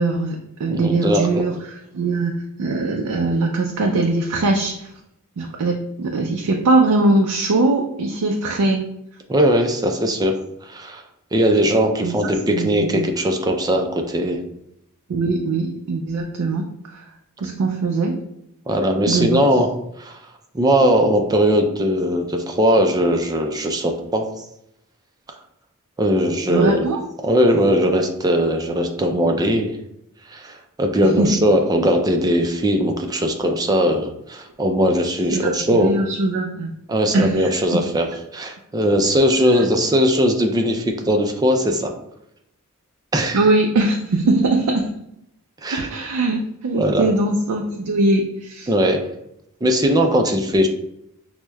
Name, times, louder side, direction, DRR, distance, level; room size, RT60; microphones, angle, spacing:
voice 1, 0.0-1.5 1.9-4.9 5.4-8.8 12.0-12.1 12.5-13.1 15.1-17.0 17.4-18.2 19.1-19.4 26.5-27.1 31.2-31.4 35.3-36.7 37.1-37.8 39.5-39.6 43.3-44.9 45.7-48.7, right 2 dB, 90° right, 2 dB, 0.4 m, -21 dB
voice 2, 0.7-1.3 9.3-10.3 10.6-11.0 11.3-14.4 18.7-19.7 20.0-20.2 20.5-24.3 26.0-26.8 27.2-29.8 30.3-35.9 36.9-41.9 43.1-43.4 45.6-46.0 46.7-47.1 48.7-49.0 49.6-50.7, equal, 15° right, 3 dB, 0.3 m, -19 dB
6.0 x 2.1 x 2.2 m, 0.79 s
head